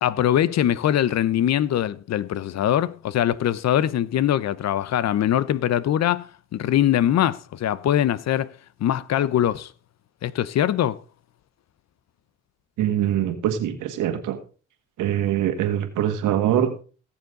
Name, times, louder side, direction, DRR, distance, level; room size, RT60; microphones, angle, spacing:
voice 1, 0.0-9.7 10.2-11.0, left 11 dB, 60° left, 0.7 m, -22 dB
voice 2, 12.8-14.4 15.0-16.8, right 10 dB, 90° right, 1.9 m, -23 dB
18.5 x 7.2 x 3.8 m
cardioid pair, 90°, 30 cm